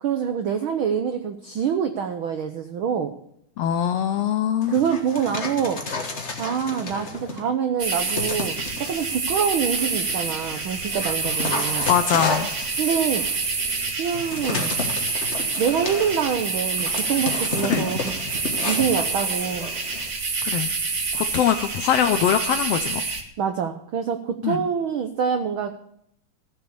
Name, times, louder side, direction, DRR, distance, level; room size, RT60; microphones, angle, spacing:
voice 1, 0.0-3.1 4.7-5.8 6.4-11.9 12.8-13.3 14.0-14.8 15.6-18.1 18.6-19.7 23.4-25.7, right 7 dB, 90° right, 7 dB, 1.1 m, -25 dB
voice 2, 3.6-4.7 11.9-12.5 17.7-17.9 20.4-20.7 21.1-23.0 24.4-24.6, left 9 dB, 80° left, 9 dB, 1.4 m, -22 dB
Dog, 4.6-7.5 8.1-9.1 9.7-20.1, left 3 dB, 35° left, 1.1 m, -32 dB
sound 1, 7.8-23.2, right 4 dB, 55° right, 0.8 m, -27 dB
14.5 x 7.1 x 6.8 m, 0.70 s
omnidirectional pair, 3.5 m